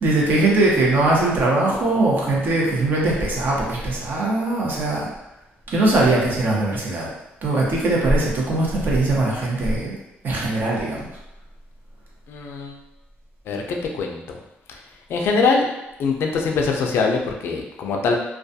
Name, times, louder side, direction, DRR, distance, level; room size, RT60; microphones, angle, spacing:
voice 1, 0.0-5.1 5.7-7.1 7.4-9.9 10.2-11.1, right 2 dB, 50° right, -4 dB, 0.7 m, -20 dB
voice 2, 12.3-12.8 13.5-14.2 15.1-15.7 16.0-18.2, left 4 dB, 65° left, 1 dB, 0.3 m, -22 dB
2.3 x 2.2 x 2.6 m, 0.90 s
cardioid pair, 110°, 4 cm